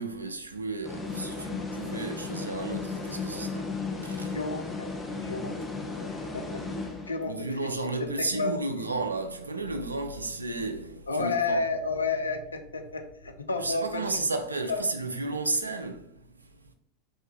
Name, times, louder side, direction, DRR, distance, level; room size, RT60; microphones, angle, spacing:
voice 1, 0.0-4.4 5.2-5.3 5.8-6.3 6.9-11.6 13.6-16.7, right 3 dB, 80° right, 0.4 m, -33 dB
sound 1, 0.8-7.5, left 3 dB, 15° left, 0.7 m, -35 dB
voice 2, 4.3-4.9 5.1-5.5 6.3-6.6 7.1-7.5 8.0-8.1 8.3-8.9 11.1-14.0 14.7-14.8, left 3 dB, 80° left, 0.4 m, -31 dB
3.2 x 2.7 x 3.3 m
figure-of-eight pair, 85°, 0 cm